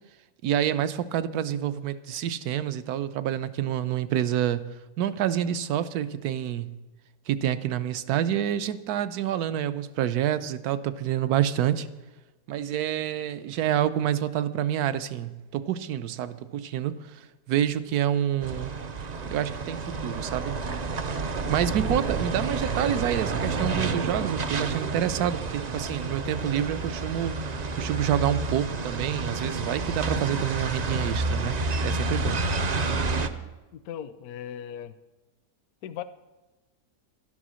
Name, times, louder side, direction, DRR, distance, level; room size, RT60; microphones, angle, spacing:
voice 1, 0.4-4.7 5.0-6.8 7.3-11.9 12.5-17.0 17.5-18.7 19.3-20.6 21.5-27.4 27.7-32.5, right 10 dB, 75° right, 13 dB, 1.2 m, -27 dB
sound 1, 18.4-33.3, right 3 dB, 50° right, 0.5 m, -29 dB
voice 2, 33.7-34.9 35.8-36.0, left 10 dB, 75° left, 12 dB, 1.1 m, -37 dB
12.0 x 11.0 x 6.3 m, 1.1 s
omnidirectional pair, 1.7 m